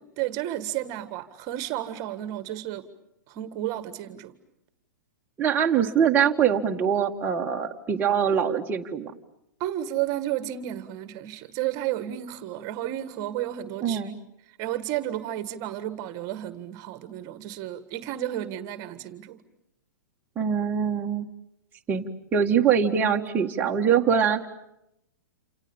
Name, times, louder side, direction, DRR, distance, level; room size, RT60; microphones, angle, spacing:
voice 1, 0.0-2.8 3.3-4.3 9.6-14.0 14.6-19.4, right 13 dB, 35° right, 12 dB, 1.8 m, -32 dB
voice 2, 5.4-9.1 13.8-14.2 20.4-21.3 21.9-22.0 22.3-24.5, right 7 dB, 20° right, 0 dB, 1.7 m, -23 dB
28.5 x 28.0 x 7.2 m, 0.82 s
hypercardioid pair, 120°, 10 cm